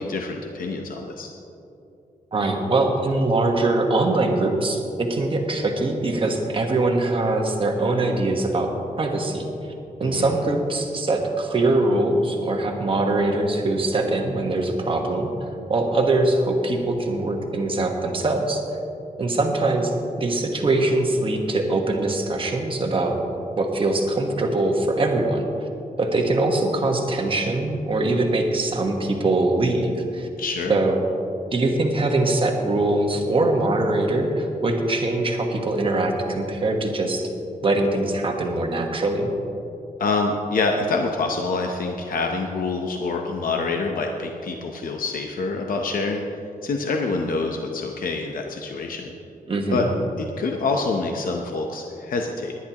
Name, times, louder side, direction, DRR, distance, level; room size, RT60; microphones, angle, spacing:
voice 1, 0.0-1.3 10.0-10.4 30.4-30.8 40.0-46.2 46.6-49.1 49.7-49.9 50.2-52.5, left 3 dB, 70° left, 2 dB, 0.8 m, -26 dB
voice 2, 2.3-8.7 9.0-9.5 10.0-15.3 15.7-18.6 19.2-23.1 23.6-25.4 26.0-30.3 30.7-31.0 31.5-37.3 37.6-39.3 49.5-49.9, right 2 dB, 35° right, 2 dB, 1.3 m, -22 dB
19.0 x 11.0 x 3.0 m, 2.8 s
wide cardioid pair, 165°, 15 cm